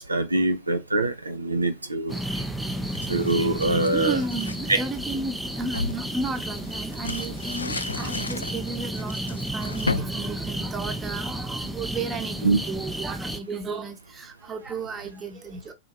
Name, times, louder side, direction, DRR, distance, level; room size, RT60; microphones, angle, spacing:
voice 1, 0.1-2.4 3.1-4.2 4.7-4.8 12.4-12.6, right 2 dB, 80° right, 0.5 m, -24 dB
sound 1, 2.1-13.4, right 1 dB, ahead, 0.5 m, -32 dB
sound 2, 2.7-4.7 5.2-11.2, left 4 dB, 80° left, 0.3 m, -35 dB
voice 2, 3.9-15.7, right 4 dB, 20° right, 0.9 m, -33 dB
3.7 x 2.7 x 3.3 m
figure-of-eight pair, 90°, 0 cm